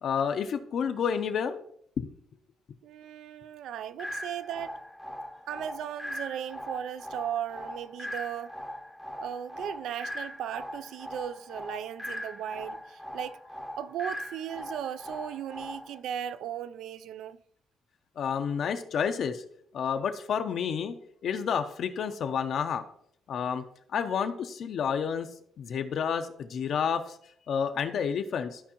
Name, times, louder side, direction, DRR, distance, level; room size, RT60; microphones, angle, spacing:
voice 1, 0.0-1.6 2.0-2.1 18.2-19.4 19.7-21.0 21.2-22.8 23.3-23.6 23.9-25.3 25.6-27.2 27.5-28.6, left 7 dB, 55° left, 0.5 m, -30 dB
voice 2, 2.8-4.8 5.5-8.6 9.2-13.4 13.8-17.4, right 10 dB, 70° right, 0.3 m, -37 dB
sound 1, 4.0-16.0, equal, ahead, 0.6 m, -40 dB
13.0 x 4.6 x 2.9 m
cardioid pair, 160°, 0 cm